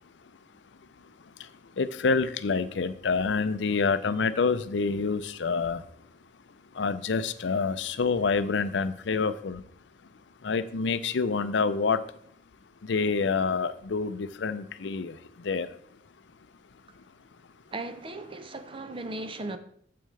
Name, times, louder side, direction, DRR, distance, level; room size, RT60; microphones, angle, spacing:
voice 1, 1.0-5.9 6.7-9.6 10.4-12.2 12.8-15.8 17.0-17.1, left 4 dB, 80° left, 0.5 m, -28 dB
voice 2, 17.7-19.6, right 2 dB, 30° right, 0.7 m, -37 dB
9.0 x 7.7 x 3.3 m
head